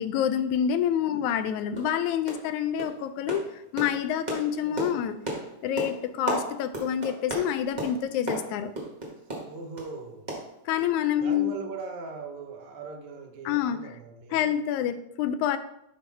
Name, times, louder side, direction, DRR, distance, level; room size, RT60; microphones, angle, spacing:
voice 1, 0.0-3.4 3.7-5.2 5.6-8.7 10.7-11.5 13.5-13.9 14.3-15.6, left 9 dB, 85° left, 10 dB, 2.0 m, -27 dB
sound 1, 0.8-0.9 1.3-1.4 1.7-2.0 2.3-2.5 2.8-9.9 10.3-11.1 11.3-11.4 11.8-11.9, right 1 dB, 40° right, 0.6 m, -35 dB
voice 2, 4.6-5.0 9.4-10.3 11.2-14.6, right 4 dB, 75° right, 5 dB, 2.2 m, -40 dB
11.0 x 3.7 x 4.1 m, 0.80 s
omnidirectional pair, 3.3 m